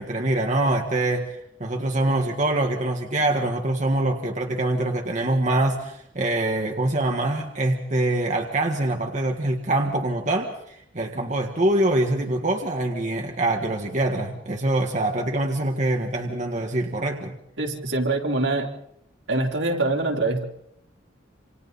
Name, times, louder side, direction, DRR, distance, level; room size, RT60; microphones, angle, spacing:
voice 1, 0.0-17.3, right 1 dB, 40° right, 2 dB, 1.7 m, -24 dB
voice 2, 17.6-18.7 19.3-20.4, right 2 dB, 75° right, 0 dB, 3.7 m, -24 dB
28.0 x 27.0 x 4.1 m, 0.73 s
head